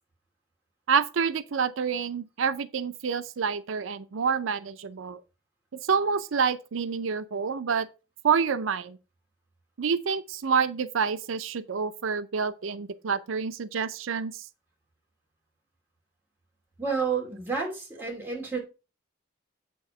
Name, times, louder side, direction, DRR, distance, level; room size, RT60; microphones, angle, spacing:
voice 1, 0.9-5.2 5.9-7.9 8.2-9.0 9.8-14.5, right 6 dB, 90° right, 0.5 m, -28 dB
voice 2, 16.8-18.6, right 5 dB, 10° right, 2.6 m, -30 dB
8.6 x 3.5 x 5.6 m
head